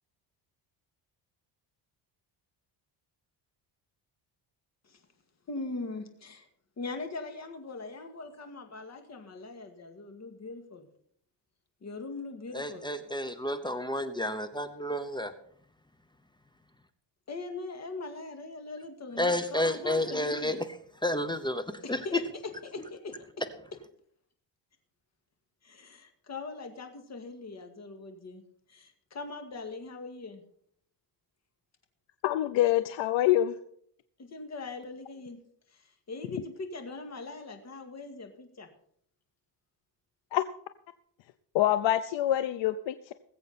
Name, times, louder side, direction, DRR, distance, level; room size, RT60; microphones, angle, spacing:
voice 1, 5.5-6.4 6.8-10.9 11.8-12.9 17.3-20.6 21.8-23.2 25.6-28.4 28.7-30.4 34.2-35.4 36.1-38.7, left 3 dB, 35° left, 6 dB, 2.1 m, -41 dB
voice 2, 12.5-15.3 19.2-20.6 21.0-21.6 21.9-22.2, left 1 dB, 10° left, 10 dB, 0.8 m, -30 dB
voice 3, 32.2-33.5 40.3-40.4 41.5-43.1, left 13 dB, 85° left, 11 dB, 0.7 m, -25 dB
20.0 x 7.9 x 4.2 m, 0.64 s
cardioid pair, 130°, 44 cm